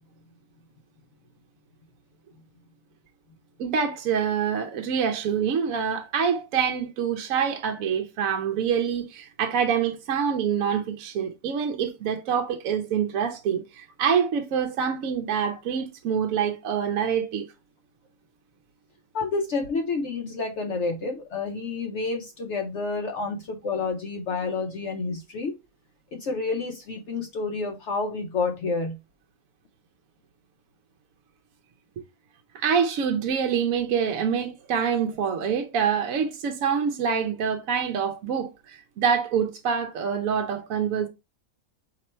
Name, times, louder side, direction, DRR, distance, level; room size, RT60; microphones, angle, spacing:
voice 1, 3.6-17.5 32.0-32.1 32.5-41.1, right 7 dB, 70° right, 1.0 m, -26 dB
voice 2, 19.1-25.6 26.1-29.0, left 4 dB, 60° left, 0.8 m, -29 dB
4.3 x 2.9 x 4.2 m
omnidirectional pair, 1.5 m